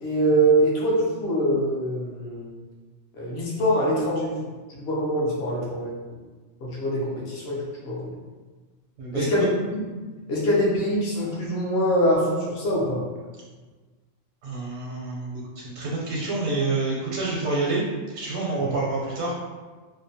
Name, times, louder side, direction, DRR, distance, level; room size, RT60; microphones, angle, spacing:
voice 1, 0.0-2.5 3.2-4.4 4.7-5.9 6.6-8.2 9.1-9.5 9.7-9.8 10.3-13.0 18.6-18.7, right 1 dB, 60° left, -5 dB, 0.9 m, -24 dB
voice 2, 9.0-9.5 14.4-19.3, right 3 dB, 80° right, -4 dB, 1.0 m, -28 dB
2.8 x 2.1 x 2.6 m, 1.3 s
omnidirectional pair, 1.3 m